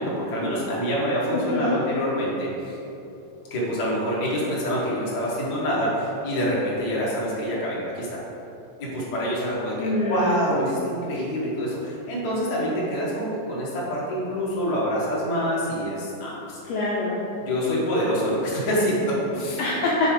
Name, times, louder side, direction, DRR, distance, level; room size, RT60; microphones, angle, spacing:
voice 1, 0.0-2.8 3.5-8.2 8.8-16.6 17.4-19.6, equal, 50° left, -7 dB, 1.2 m, -26 dB
voice 2, 1.3-1.8 9.8-10.4 16.6-17.2 19.6-20.1, left 2 dB, 85° left, -6 dB, 1.4 m, -25 dB
7.0 x 3.5 x 5.0 m, 2.9 s
omnidirectional pair, 3.8 m